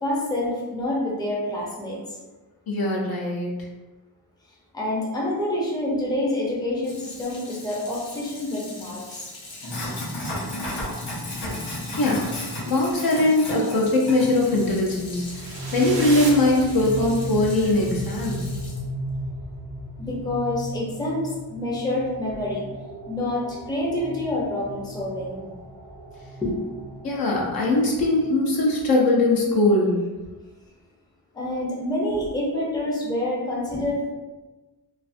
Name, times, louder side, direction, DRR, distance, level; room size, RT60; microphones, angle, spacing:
voice 1, 0.0-2.2 4.7-9.3 20.0-22.6 23.1-25.4 26.4-26.7 31.3-34.1, left 1 dB, 10° left, -4 dB, 0.5 m, -27 dB
voice 2, 2.7-3.5 12.0-12.3 12.6-15.3 15.7-18.4 27.0-30.0, left 2 dB, 60° left, -3 dB, 0.6 m, -21 dB
Sink (filling or washing), 6.8-18.8, left 1 dB, 85° left, 0.9 m, -36 dB
sound 1, 13.8-28.7, right 1 dB, 35° left, 0.9 m, -36 dB
sound 2, 15.2-17.4, right 2 dB, 65° right, 0.6 m, -35 dB
2.5 x 2.4 x 2.4 m, 1.2 s
wide cardioid pair, 125°, 41 cm